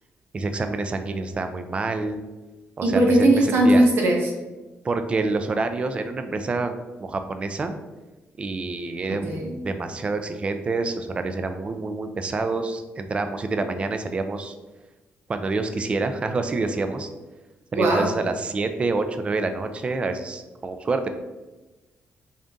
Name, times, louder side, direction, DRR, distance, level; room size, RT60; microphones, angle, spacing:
voice 1, 0.3-2.2 2.8-3.8 4.8-7.7 8.4-14.5 15.3-17.1 17.7-21.1, right 3 dB, 25° right, 8 dB, 0.3 m, -27 dB
voice 2, 2.8-4.3 9.1-9.6 17.7-18.1, right 1 dB, 65° right, 0 dB, 1.0 m, -19 dB
3.8 x 2.6 x 3.5 m, 1.1 s
cardioid pair, 140°, 4 cm